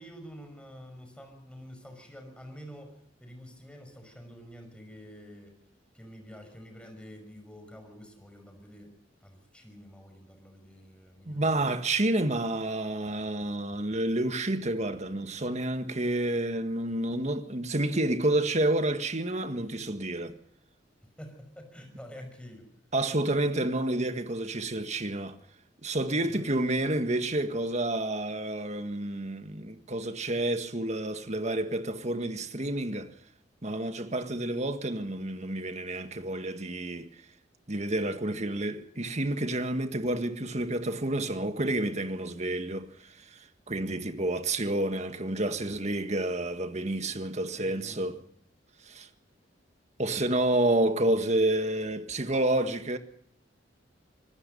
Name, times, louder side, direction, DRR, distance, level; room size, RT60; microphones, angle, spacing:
voice 1, 0.0-5.5 5.9-8.9 9.2-11.7 21.0-22.7 26.2-26.5 47.6-48.2, equal, 5° left, 5.8 m, -48 dB
voice 2, 11.3-20.3 22.9-25.4 25.8-33.1 33.6-37.1 37.7-42.9 43.7-48.2 48.8-49.1 50.0-53.0, right 1 dB, 35° right, 1.7 m, -29 dB
26.0 x 19.0 x 5.5 m
head